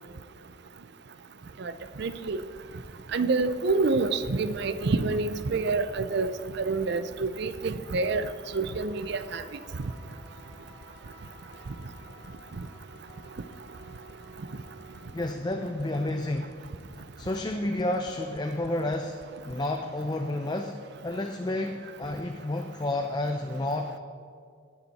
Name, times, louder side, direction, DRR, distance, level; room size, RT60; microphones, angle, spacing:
sound 1, 1.8-19.5, left 2 dB, 55° left, 0.7 m, -51 dB
voice 1, 2.0-2.4 3.1-8.3 8.5-9.4, right 3 dB, 55° right, 12 dB, 0.5 m, -27 dB
sound 2, 4.4-15.0, right 1 dB, 10° right, 1.6 m, -53 dB
voice 2, 15.1-16.5 17.2-19.2 19.5-20.8 21.0-24.0, left 1 dB, 20° left, 4 dB, 0.5 m, -30 dB
18.5 x 7.2 x 4.2 m, 2.1 s
head